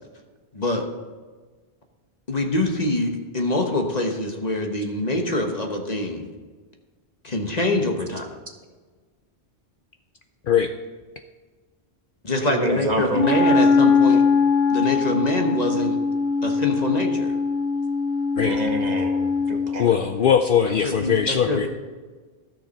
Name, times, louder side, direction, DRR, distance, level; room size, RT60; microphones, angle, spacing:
voice 1, 0.5-0.9 2.3-6.3 7.2-8.3 12.2-14.2 14.7-16.0 16.4-17.3 20.6-21.7, left 1 dB, 40° left, 3 dB, 1.2 m, -25 dB
voice 2, 12.4-13.2 18.4-19.9, right 1 dB, 40° right, 3 dB, 1.1 m, -27 dB
Wind instrument woodwind instrument, 13.1-19.8, left 4 dB, 80° left, 1.5 m, -21 dB
voice 3, 19.8-21.7, left 8 dB, 60° left, 7 dB, 0.6 m, -20 dB
13.0 x 6.6 x 4.2 m, 1.4 s
omnidirectional pair, 1.1 m